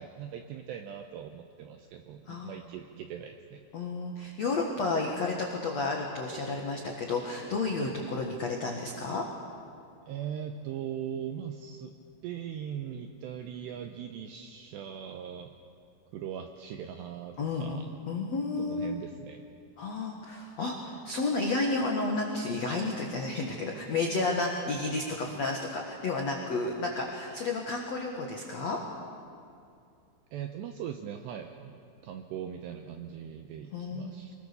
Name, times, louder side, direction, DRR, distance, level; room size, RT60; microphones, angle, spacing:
voice 1, 0.0-3.6 7.8-8.0 10.1-12.0 12.2-15.5 16.1-17.9 18.6-19.4 30.3-34.4, right 9 dB, 80° right, 5 dB, 2.5 m, -40 dB
voice 2, 3.7-9.2 17.4-17.8 18.1-19.0 19.8-28.8 33.7-34.1, left 3 dB, 80° left, 0 dB, 1.5 m, -31 dB
24.5 x 21.0 x 6.9 m, 2.5 s
omnidirectional pair, 5.8 m